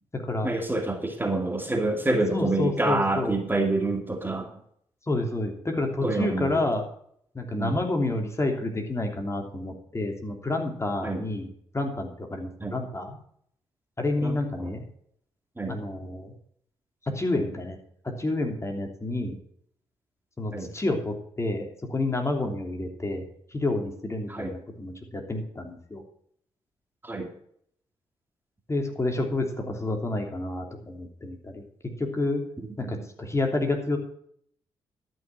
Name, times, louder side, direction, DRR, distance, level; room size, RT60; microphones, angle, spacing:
voice 1, 0.4-4.5 6.0-6.6 7.5-7.8 11.0-11.2 12.6-12.8 14.2-14.8 15.6-15.8 20.5-20.7 24.3-24.6 27.0-27.3 32.8-33.0, right 2 dB, 20° right, 4 dB, 2.5 m, -27 dB
voice 2, 2.3-3.4 5.1-6.8 7.3-13.2 14.0-14.8 15.7-16.3 17.1-17.8 18.2-19.4 20.4-23.2 23.5-26.0 28.7-31.6 32.0-32.4 32.8-34.0, left 2 dB, 25° left, 3 dB, 3.2 m, -29 dB
12.5 x 6.0 x 7.7 m, 0.66 s
supercardioid pair, 50°, 11 cm